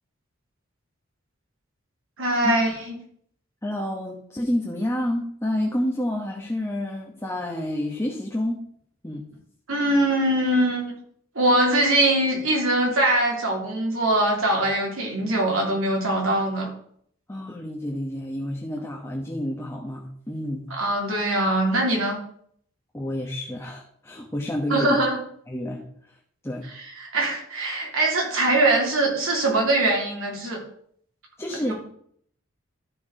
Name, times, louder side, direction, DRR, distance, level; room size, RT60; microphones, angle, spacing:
voice 1, 2.2-2.9 9.7-10.9 11.3-16.7 20.8-22.2 24.7-25.2 27.0-30.6 31.6-31.7, right 1 dB, 90° right, -1 dB, 3.4 m, -22 dB
voice 2, 3.6-8.7 9.0-9.2 17.3-20.7 22.9-25.0 25.5-25.8 26.4-26.7 31.4-31.7, left 1 dB, 15° left, -1 dB, 1.1 m, -29 dB
13.0 x 4.7 x 5.0 m, 0.63 s
head